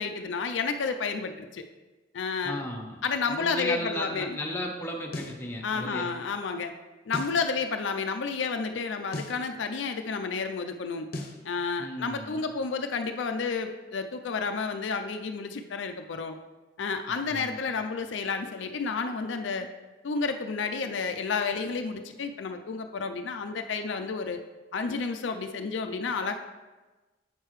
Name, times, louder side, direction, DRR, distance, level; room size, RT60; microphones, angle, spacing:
voice 1, 0.0-1.6 2.1-2.6 3.0-4.4 5.6-6.7 7.1-11.1 11.4-16.3 16.8-19.7 20.0-24.4 24.7-26.4, left 4 dB, 70° left, 6 dB, 0.4 m, -31 dB
voice 2, 2.4-3.0 3.3-6.1 11.8-12.4 17.3-17.6, left 1 dB, 10° left, -1 dB, 0.9 m, -35 dB
sound 1, 5.1-5.4 7.1-7.4 9.1-9.4 11.1-11.4, left 1 dB, 55° left, 0.8 m, -36 dB
8.0 x 6.6 x 3.1 m, 1.2 s
head